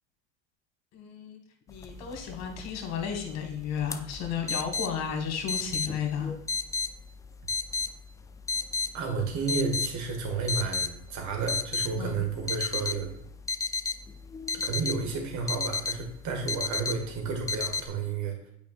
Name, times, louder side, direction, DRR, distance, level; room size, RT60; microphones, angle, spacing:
voice 1, 0.9-1.4 1.7-6.3 12.0-12.2, left 7 dB, 50° left, 3 dB, 1.8 m, -33 dB
sound 1, 1.7-17.9, left 4 dB, 10° left, 0.3 m, -34 dB
voice 2, 8.9-13.1 14.5-18.3, right 4 dB, 60° right, 3 dB, 1.9 m, -31 dB
8.2 x 5.0 x 2.5 m, 0.75 s
supercardioid pair, 95°, 34 cm